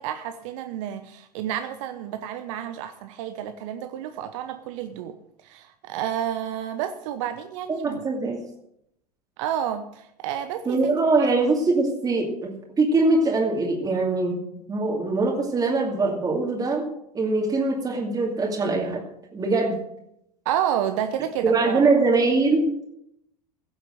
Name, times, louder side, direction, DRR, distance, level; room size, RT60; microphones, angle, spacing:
voice 1, 0.0-8.0 9.4-10.9 11.2-11.3 20.4-21.9, right 10 dB, 50° right, 8 dB, 1.0 m, -30 dB
voice 2, 7.7-8.4 10.7-14.4 14.7-19.0 19.3-19.8 21.4-22.7, right 3 dB, 20° right, -1 dB, 2.6 m, -22 dB
16.5 x 7.8 x 6.7 m, 0.77 s
figure-of-eight pair, 80°, 20 cm